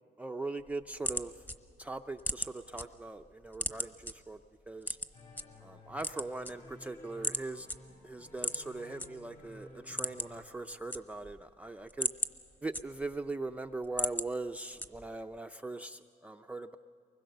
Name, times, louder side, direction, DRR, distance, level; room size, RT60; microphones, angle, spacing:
voice 1, 0.2-1.3 1.8-4.4 4.7-5.0 5.6-7.7 8.0-12.1 12.6-16.8, right 2 dB, 10° right, 5 dB, 0.4 m, -40 dB
sound 1, 0.6-2.8 3.2-4.1 4.8-5.4 5.9-6.9 7.2-7.4 7.7-7.8 8.3-9.1 9.4-9.5 9.8-10.4 10.7-11.4 11.8-13.2 13.6-14.3 14.8-15.2, left 1 dB, 10° left, 1.0 m, -36 dB
sound 2, 5.1-10.5, left 2 dB, 50° left, 6.2 m, -54 dB
24.0 x 21.0 x 6.7 m, 2.5 s
cardioid pair, 110°, 17 cm